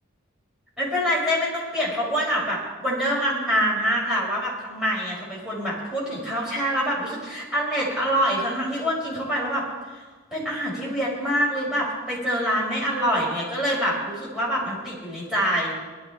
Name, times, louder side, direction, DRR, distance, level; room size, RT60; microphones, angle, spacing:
voice 1, 0.8-9.6 10.3-15.7, equal, 5° right, -7 dB, 5.7 m, -25 dB
18.5 x 12.5 x 4.5 m, 1.3 s
head